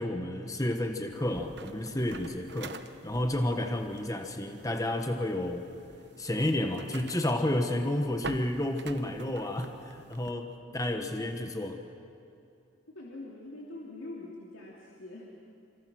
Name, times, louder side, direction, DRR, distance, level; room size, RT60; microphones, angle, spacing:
voice 1, 0.0-2.8 3.0-5.7 6.2-10.5 10.7-11.8, left 1 dB, 15° left, 5 dB, 1.2 m, -31 dB
sound 1, 1.1-10.3, right 3 dB, 55° right, 1.0 m, -47 dB
voice 2, 10.7-11.8 12.9-15.3, left 2 dB, 85° left, -4 dB, 3.0 m, -45 dB
27.0 x 26.0 x 6.3 m, 2.7 s
head